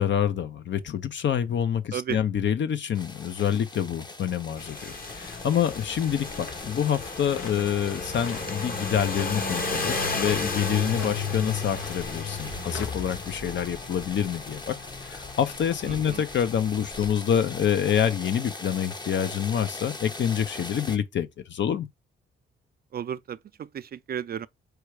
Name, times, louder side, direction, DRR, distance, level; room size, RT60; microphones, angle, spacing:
voice 1, 0.0-14.7 15.0-21.9, left 9 dB, 60° left, 0.7 m, -27 dB
sound 1, 2.9-21.0, left 2 dB, 20° left, 0.7 m, -41 dB
sound 2, 4.6-17.1, left 4 dB, 45° left, 1.1 m, -34 dB
sound 3, 7.2-7.7 8.2-8.5 8.9-9.5 9.7-10.3 10.8-11.2 11.7-13.0, left 5 dB, 85° left, 1.0 m, -42 dB
voice 2, 15.9-16.3 22.9-24.5, right 9 dB, 45° right, 0.4 m, -34 dB
4.7 x 2.3 x 4.7 m
cardioid pair, 65°, 21 cm